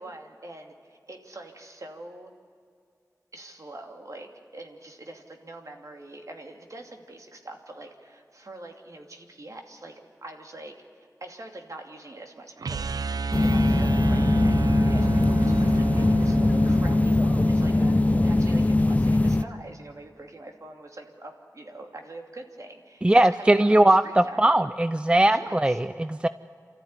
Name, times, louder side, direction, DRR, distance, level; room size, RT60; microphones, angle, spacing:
voice 1, 0.0-2.3 3.3-13.0 13.4-24.6 25.3-26.1, right 2 dB, 60° right, 3 dB, 2.7 m, -44 dB
sound 1, 12.6-18.7, right 4 dB, 85° right, 0.5 m, -31 dB
sound 2, 13.3-19.4, left 2 dB, 25° left, 0.7 m, -21 dB
voice 2, 23.0-25.7 26.0-26.3, right 1 dB, 15° right, 13 dB, 0.5 m, -19 dB
29.0 x 14.0 x 9.7 m, 2.3 s
wide cardioid pair, 65°, 6 cm